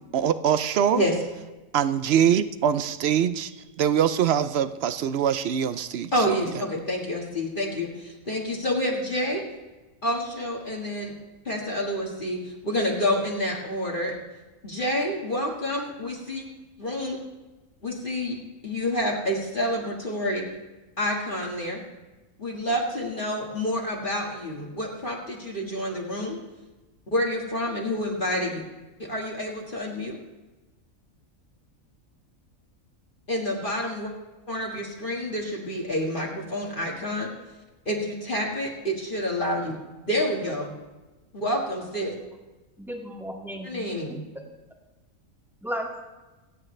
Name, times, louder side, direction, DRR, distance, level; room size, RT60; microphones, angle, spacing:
voice 1, 0.1-1.0 1.7-3.5 3.8-6.1, right 9 dB, 60° right, 13 dB, 0.7 m, -23 dB
voice 2, 6.1-9.4 10.0-11.1 11.5-14.2 14.6-16.5 16.8-17.2 17.8-18.4 18.6-20.4 21.0-21.8 22.4-26.4 27.1-28.6 29.0-30.2 33.3-34.1 34.5-37.3 37.9-39.7 40.1-40.7 41.3-42.1 43.6-44.3, equal, 40° left, -2 dB, 1.9 m, -28 dB
voice 3, 42.8-43.8 44.1-44.2 45.6-46.0, equal, ahead, -1 dB, 2.0 m, -34 dB
26.5 x 8.9 x 3.2 m, 1.2 s
omnidirectional pair, 1.4 m